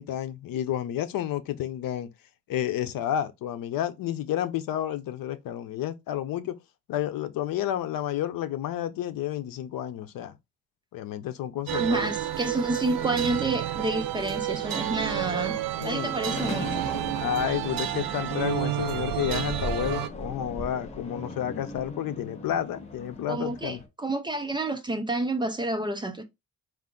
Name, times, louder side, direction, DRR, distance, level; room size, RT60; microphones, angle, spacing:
voice 1, 0.0-2.1 2.5-6.6 6.9-10.4 10.9-12.1 15.8-16.2 17.2-23.8, left 11 dB, 80° left, 0.7 m, -30 dB
voice 2, 11.7-15.6 15.8-16.9 23.3-26.2, right 2 dB, 15° right, 0.4 m, -29 dB
sound 1, 11.7-20.1, right 12 dB, 90° right, 0.6 m, -30 dB
sound 2, 16.2-23.9, left 2 dB, 20° left, 0.7 m, -38 dB
4.7 x 2.5 x 3.7 m
cardioid pair, 170°, 34 cm